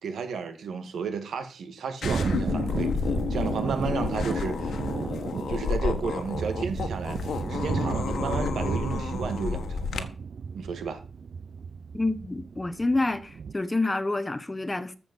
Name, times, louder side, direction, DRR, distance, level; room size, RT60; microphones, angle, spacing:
voice 1, 0.0-2.9 3.3-4.8 5.5-10.1 10.5-11.0, right 5 dB, 80° right, 2.0 m, -32 dB
sound 1, 2.0-10.0, left 6 dB, 75° left, 1.4 m, -31 dB
Thunder, 2.0-13.5, right 6 dB, 55° right, 0.5 m, -34 dB
voice 2, 11.9-15.0, left 2 dB, 15° left, 0.9 m, -28 dB
14.0 x 6.9 x 5.4 m
wide cardioid pair, 140°, 0 cm